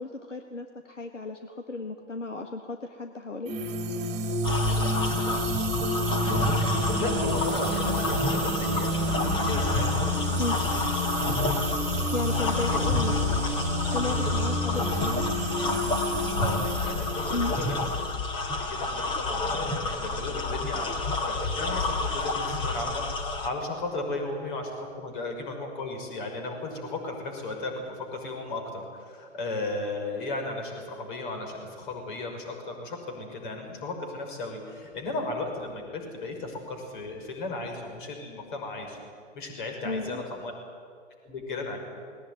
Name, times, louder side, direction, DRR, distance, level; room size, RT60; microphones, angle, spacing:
voice 1, 0.0-3.5 10.4-10.6 12.1-13.5 13.9-15.2 17.3-17.5 39.8-40.2, left 3 dB, 80° left, 5 dB, 1.7 m, -34 dB
sound 1, 3.5-18.2, equal, 20° right, 2.6 m, -29 dB
sound 2, 4.4-23.5, left 3 dB, 15° left, 1.5 m, -29 dB
voice 2, 6.9-9.9 12.5-12.6 16.3-17.9 18.6-39.0 39.3-40.5 41.2-41.8, left 2 dB, 40° left, 3 dB, 5.9 m, -35 dB
20.0 x 18.5 x 9.5 m, 2.2 s
figure-of-eight pair, 120°, 37 cm